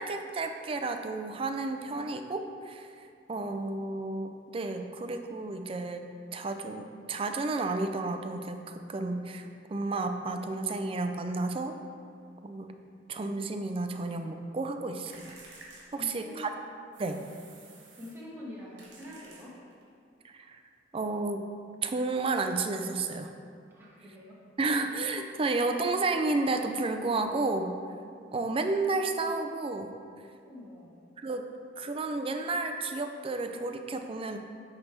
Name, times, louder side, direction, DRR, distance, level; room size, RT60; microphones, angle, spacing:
voice 1, 0.0-2.9 3.3-11.7 12.4-12.7 13.1-15.4 15.9-16.5 17.0-17.2 20.2-20.6 20.9-21.4 21.8-23.3 24.6-27.7 28.3-29.9 31.2-31.5 31.8-34.4, right 3 dB, 30° right, 6 dB, 0.4 m, -32 dB
sound 1, 15.1-16.5 16.9-18.3 18.8-19.9, right 3 dB, 70° right, 1.5 m, -52 dB
voice 2, 16.0-16.4 17.0-17.2 17.9-19.5 23.7-24.4 25.2-25.3 30.4-31.0, left 1 dB, 10° right, -6 dB, 1.4 m, -46 dB
9.6 x 3.4 x 4.4 m, 2.3 s
head